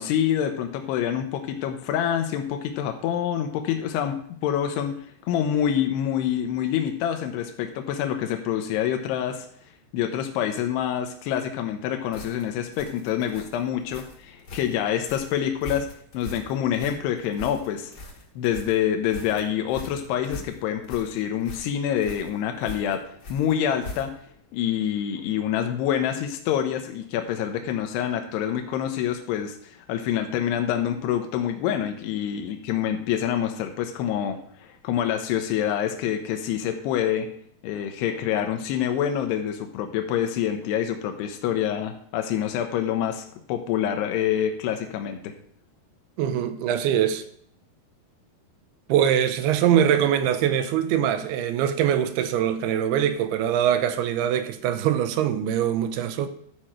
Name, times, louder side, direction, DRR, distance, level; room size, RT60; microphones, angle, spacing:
voice 1, 0.0-4.2 4.4-5.0 5.2-9.5 9.9-15.9 16.1-17.9 18.4-23.0 23.3-24.1 24.5-37.3 37.6-45.3, left 9 dB, 85° left, 2.9 m, -26 dB
sound 1, 12.1-24.3, left 2 dB, 45° left, 1.3 m, -42 dB
voice 2, 46.2-47.2 48.9-56.3, right 10 dB, 85° right, 2.7 m, -23 dB
12.5 x 6.3 x 4.4 m
omnidirectional pair, 4.7 m